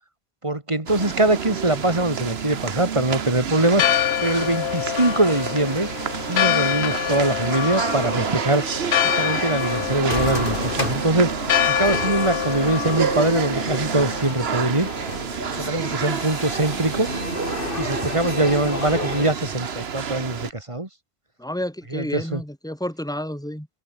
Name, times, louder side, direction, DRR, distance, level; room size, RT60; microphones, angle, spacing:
voice 1, 0.4-3.8 4.2-5.9 6.3-8.6 9.2-11.3 11.7-14.9 15.6-17.1 17.8-20.9 21.9-22.4, right 2 dB, 30° right, 2.8 m, -22 dB
sound 1, 0.9-20.5, right 7 dB, 70° right, 1.4 m, -29 dB
Church bell, 3.6-15.2, left 12 dB, 85° left, 0.9 m, -26 dB
sound 2, 9.6-19.3, left 2 dB, 55° left, 3.8 m, -32 dB
voice 2, 21.4-23.7, left 1 dB, 5° left, 4.0 m, -30 dB
open air
omnidirectional pair, 1.1 m